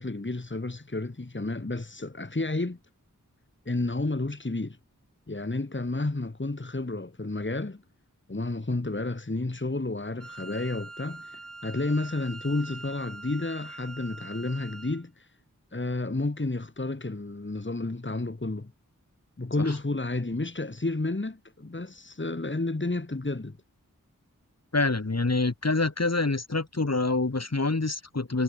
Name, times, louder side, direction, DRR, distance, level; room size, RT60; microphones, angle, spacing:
voice 1, 0.0-2.8 3.7-4.8 5.3-7.8 8.3-15.3 15.7-18.7 19.4-23.6, left 2 dB, 35° left, 2.7 m, -31 dB
Wind instrument woodwind instrument, 10.2-15.0, right 2 dB, 45° right, 4.6 m, -44 dB
voice 2, 24.7-28.4, left 3 dB, 50° left, 3.6 m, -26 dB
wide cardioid pair, 55°, 33 cm